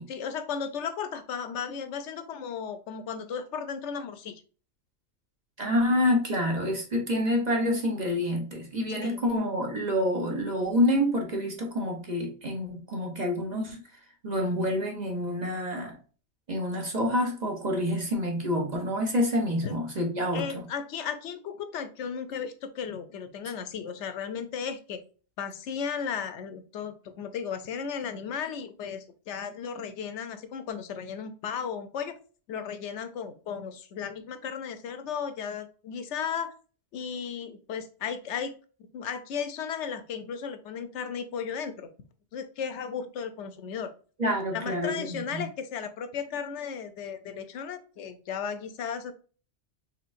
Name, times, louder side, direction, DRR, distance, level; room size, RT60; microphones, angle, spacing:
voice 1, 0.1-4.4 9.0-9.2 19.6-19.7 20.3-25.0 25.4-32.2 32.5-36.5 36.9-38.5 38.9-41.9 42.3-43.9 44.5-49.1, left 7 dB, 75° left, 9 dB, 0.9 m, -35 dB
voice 2, 5.6-13.8 14.2-16.0 16.5-20.6 44.2-45.4, left 1 dB, 40° right, 1 dB, 1.0 m, -27 dB
4.3 x 3.4 x 2.5 m, 0.38 s
omnidirectional pair, 1.2 m